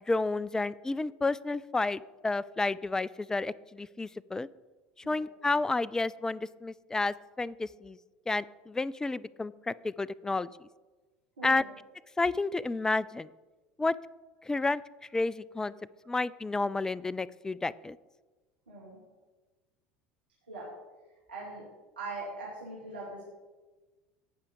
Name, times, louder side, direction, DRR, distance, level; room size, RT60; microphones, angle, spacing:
voice 1, 0.1-4.5 5.1-8.0 8.3-10.5 11.4-11.6 12.2-13.3 13.8-13.9 14.5-14.8 15.1-15.7 16.1-18.0, left 3 dB, 10° left, 20 dB, 0.3 m, -31 dB
voice 2, 11.4-11.7 18.7-19.0 20.5-20.6 21.3-21.6 22.0-23.3, right 3 dB, 85° right, -6 dB, 2.2 m, -41 dB
17.0 x 5.6 x 3.8 m, 1.2 s
hypercardioid pair, 75°, 5 cm